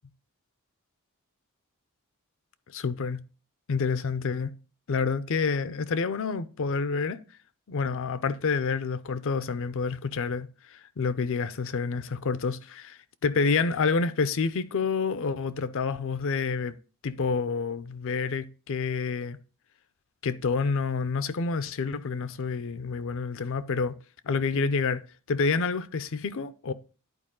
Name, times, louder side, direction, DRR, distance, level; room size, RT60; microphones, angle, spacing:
voice 1, 2.7-3.2 3.7-4.5 4.9-7.2 7.7-16.7 17.0-19.4 20.2-24.0 24.2-25.0 25.3-26.7, left 4 dB, 60° left, 0.5 m, -28 dB
11.0 x 4.6 x 3.7 m
head